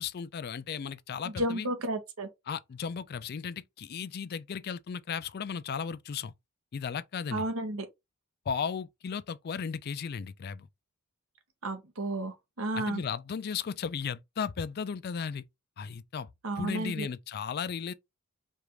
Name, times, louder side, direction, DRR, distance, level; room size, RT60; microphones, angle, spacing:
voice 1, 0.0-1.7 2.5-6.3 6.7-7.4 8.5-10.7 12.7-15.4 15.8-16.3 16.6-17.9, left 6 dB, 45° left, 0.3 m, -35 dB
voice 2, 1.2-2.3 7.3-7.9 11.6-13.0 16.4-17.1, right 1 dB, 70° right, 1.0 m, -32 dB
4.9 x 2.5 x 3.0 m
head